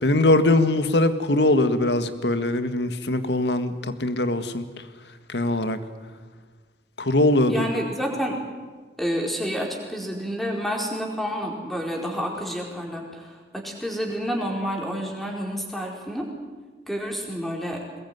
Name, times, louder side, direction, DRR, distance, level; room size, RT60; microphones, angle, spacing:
voice 1, 0.0-4.6 5.3-5.8 7.0-7.7, left 1 dB, 80° left, 10 dB, 1.8 m, -21 dB
voice 2, 7.5-8.4 9.0-16.3 16.9-17.8, equal, ahead, 0 dB, 4.6 m, -29 dB
23.0 x 20.5 x 9.5 m, 1.4 s
head